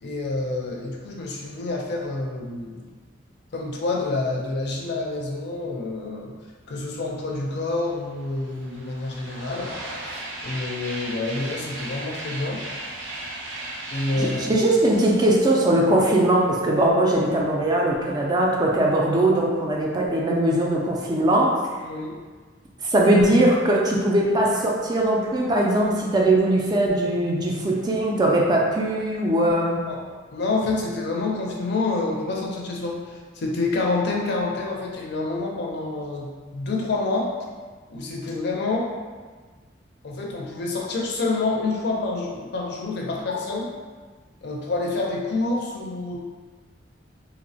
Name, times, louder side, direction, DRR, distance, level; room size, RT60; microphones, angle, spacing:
voice 1, 0.0-2.9 3.5-6.3 6.7-9.8 10.1-12.6 13.9-14.6 21.8-22.1 29.8-30.0 30.3-37.3 37.9-38.9 40.0-43.7 44.4-46.2, left 3 dB, 60° left, -2 dB, 0.4 m, -28 dB
sound 1, 7.5-7.6 7.8-16.4, right 1 dB, 85° right, 0.5 m, -37 dB
voice 2, 14.2-21.6 22.8-29.8, right 1 dB, 20° right, -2 dB, 0.3 m, -20 dB
2.8 x 2.0 x 2.6 m, 1.4 s
head